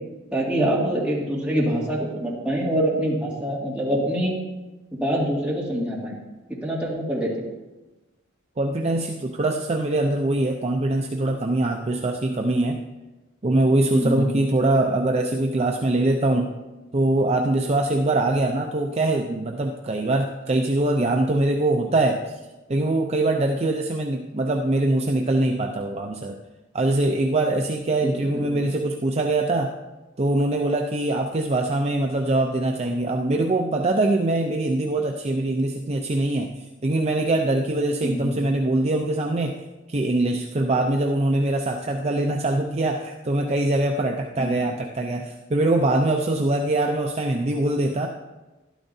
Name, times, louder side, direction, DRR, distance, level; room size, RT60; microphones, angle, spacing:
voice 1, 0.3-4.4 4.9-6.2 6.5-7.5 13.9-14.3 28.0-28.1 28.5-28.6 38.0-38.3 44.4-44.5, equal, 5° right, -6 dB, 2.2 m, -25 dB
voice 2, 8.6-12.8 13.4-16.5 16.9-22.3 22.7-26.4 26.7-29.7 30.2-39.6 39.9-48.1, right 2 dB, 35° right, 2 dB, 0.5 m, -23 dB
12.5 x 12.0 x 2.7 m, 1.1 s
head